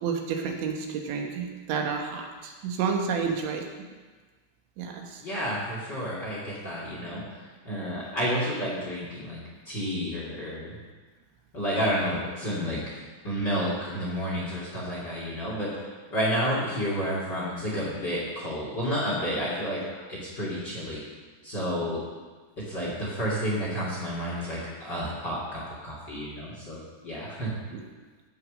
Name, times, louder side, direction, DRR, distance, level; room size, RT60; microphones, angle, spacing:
voice 1, 0.0-3.6 4.8-5.2 27.7-27.8, right 6 dB, 80° right, 2 dB, 3.6 m, -30 dB
voice 2, 5.2-7.4 7.6-10.8 11.5-12.8 13.2-19.8 20.1-21.0 21.4-22.0 22.6-27.5, equal, 30° left, -5 dB, 2.4 m, -30 dB
15.5 x 6.6 x 6.4 m, 1.4 s
omnidirectional pair, 5.3 m